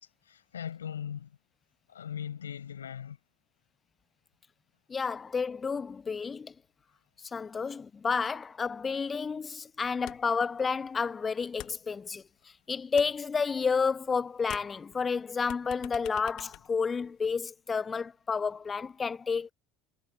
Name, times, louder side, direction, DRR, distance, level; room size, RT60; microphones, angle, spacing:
voice 1, 0.2-1.3 1.9-3.2, left 8 dB, 75° left, 6.7 m, -39 dB
voice 2, 4.9-6.5 7.2-12.2 12.7-19.5, left 5 dB, 25° left, 0.6 m, -31 dB
sound 1, 10.1-10.5 10.7-12.5 12.8-14.1 14.4-17.4, left 18 dB, 55° left, 1.9 m, -48 dB
figure-of-eight pair, 65°, 0 cm